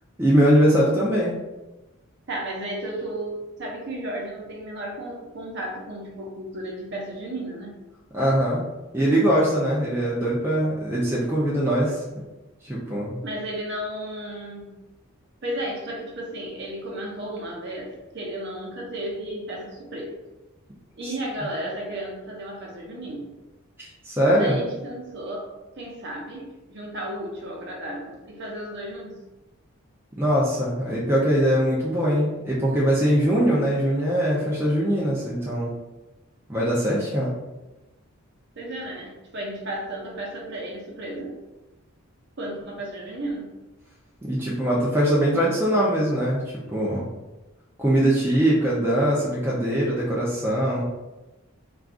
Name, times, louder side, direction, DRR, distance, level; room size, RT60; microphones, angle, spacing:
voice 1, 0.2-1.3 8.1-8.6 8.9-12.0 12.6-13.2 21.0-21.1 23.8-24.6 30.2-35.7 36.5-37.3 44.2-46.4 46.7-47.0 47.8-50.8, equal, 10° right, -6 dB, 0.4 m, -22 dB
voice 2, 2.3-7.8 13.2-14.8 15.4-20.2 21.0-23.3 24.4-25.5 25.8-29.2 38.6-41.3 42.4-43.5, right 1 dB, 50° right, -2 dB, 0.6 m, -33 dB
2.4 x 2.3 x 3.5 m, 1.1 s
head